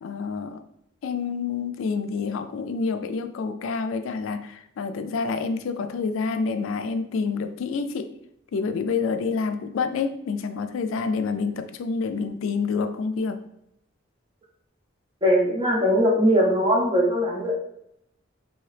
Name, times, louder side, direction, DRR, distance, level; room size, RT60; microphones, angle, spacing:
voice 1, 0.0-0.6 1.0-8.1 8.5-13.4, left 5 dB, 85° left, 8 dB, 0.3 m, -28 dB
voice 2, 15.2-17.6, equal, 25° right, -2 dB, 0.5 m, -20 dB
2.8 x 2.7 x 3.2 m, 0.78 s
head